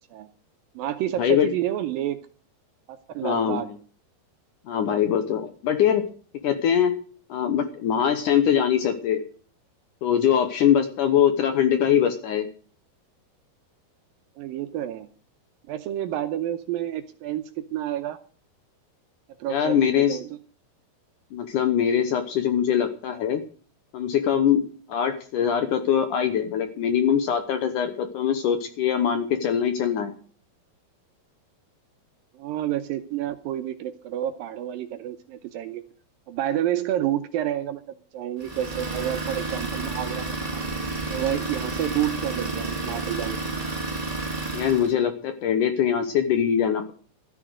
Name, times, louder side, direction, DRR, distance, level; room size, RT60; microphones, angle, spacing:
voice 1, 0.8-2.3 2.9-3.7 14.4-15.1 15.7-18.2 19.4-20.3 32.3-35.8 36.3-37.8 38.1-40.7 41.1-43.6, right 12 dB, 80° right, 9 dB, 2.2 m, -29 dB
voice 2, 3.2-3.6 4.7-6.0 6.4-7.0 7.3-9.2 10.0-12.5 19.5-20.2 21.3-23.4 23.9-24.6 24.9-30.2 44.5-46.9, left 9 dB, 70° left, 8 dB, 2.0 m, -22 dB
Idling, 38.4-44.9, right 3 dB, 15° right, 1.6 m, -31 dB
13.5 x 9.7 x 6.4 m, 0.42 s
omnidirectional pair, 4.8 m